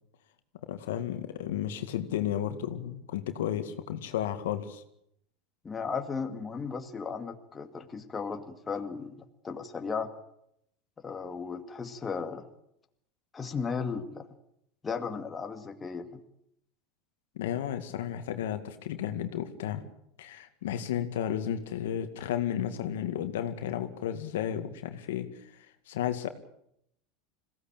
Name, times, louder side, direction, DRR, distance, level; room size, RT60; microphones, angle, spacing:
voice 1, 0.7-4.8 17.4-19.8 20.2-25.3 25.9-26.3, left 10 dB, 85° left, 8 dB, 2.0 m, -33 dB
voice 2, 5.6-10.1 11.0-12.5 13.3-14.2 14.8-16.1, left 5 dB, 20° left, 6 dB, 2.1 m, -35 dB
21.5 x 16.5 x 8.9 m, 0.76 s
supercardioid pair, 120°, 0 cm